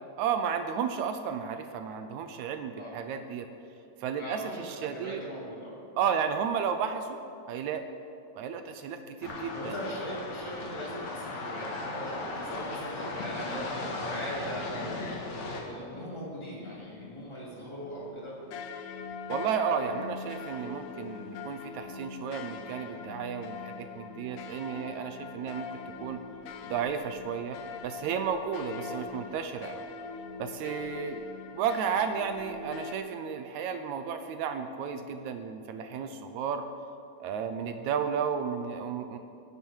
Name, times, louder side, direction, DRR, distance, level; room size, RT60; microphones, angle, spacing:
voice 1, 0.2-3.5 4.0-5.2 6.0-7.2 7.5-7.9 8.3-9.7 19.3-26.2 26.6-27.6 27.8-29.9 30.4-31.2 31.5-36.6 37.2-39.2, right 7 dB, 80° right, 7 dB, 1.6 m, -33 dB
voice 2, 4.2-5.8 9.5-15.0 15.4-18.3, equal, 5° left, -7 dB, 4.0 m, -40 dB
sound 1, 9.2-15.6, left 2 dB, 55° left, 2.8 m, -37 dB
sound 2, 15.9-32.9, left 5 dB, 80° left, 1.6 m, -42 dB
23.5 x 10.5 x 4.7 m, 2.6 s
omnidirectional pair, 4.2 m